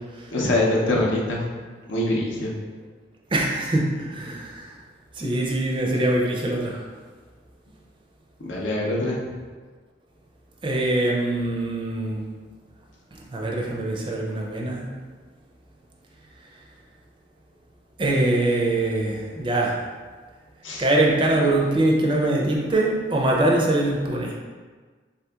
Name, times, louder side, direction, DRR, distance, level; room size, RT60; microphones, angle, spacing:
voice 1, 0.3-1.4 1.9-2.5 8.4-9.2 20.6-20.8, left 1 dB, 85° left, -3 dB, 0.7 m, -23 dB
voice 2, 3.3-4.8 5.1-6.9 10.6-12.3 13.1-14.9 18.0-19.8 20.8-24.4, right 1 dB, 25° right, -2 dB, 0.4 m, -23 dB
3.5 x 2.8 x 2.3 m, 1.5 s
head